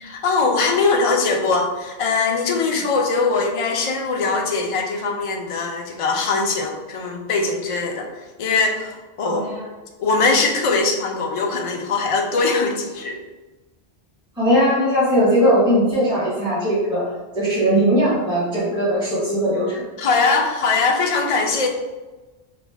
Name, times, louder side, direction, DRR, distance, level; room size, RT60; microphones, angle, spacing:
voice 1, 0.0-9.5 10.0-13.2 20.0-21.7, left 4 dB, 60° left, 2 dB, 0.3 m, -21 dB
voice 2, 9.2-9.6 14.3-17.1 17.3-19.8, equal, 5° right, -11 dB, 1.1 m, -19 dB
3.0 x 2.5 x 3.3 m, 1.2 s
omnidirectional pair, 1.1 m